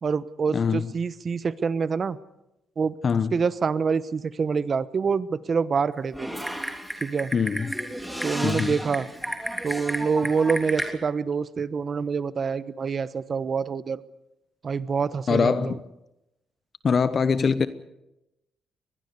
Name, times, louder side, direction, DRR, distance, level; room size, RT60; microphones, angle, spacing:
voice 1, 0.0-2.2 2.8-2.9 3.3-6.3 7.0-7.3 8.2-9.1 9.6-14.0 14.6-15.8, right 5 dB, 45° right, 16 dB, 1.1 m, -26 dB
voice 2, 0.5-0.8 3.0-3.3 7.3-7.7 8.4-8.7 15.3-15.8 16.8-17.7, left 6 dB, 45° left, 13 dB, 1.0 m, -23 dB
Typing, 6.1-10.9, equal, 5° right, 3.3 m, -32 dB
24.0 x 20.5 x 6.9 m, 0.90 s
cardioid pair, 90°, 0 cm